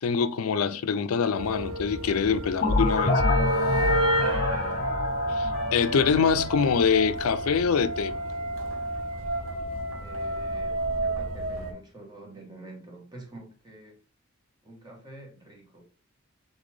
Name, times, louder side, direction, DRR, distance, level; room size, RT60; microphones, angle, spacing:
voice 1, 0.0-3.2 5.3-8.1, left 6 dB, 90° left, 0.4 m, -25 dB
sound 1, 1.3-11.7, right 1 dB, 75° right, 1.0 m, -30 dB
sound 2, 2.6-7.3, left 2 dB, 40° left, 0.6 m, -27 dB
voice 2, 4.3-4.9 10.0-14.0 14.6-15.8, right 2 dB, 20° right, 1.2 m, -47 dB
4.1 x 3.4 x 3.3 m
head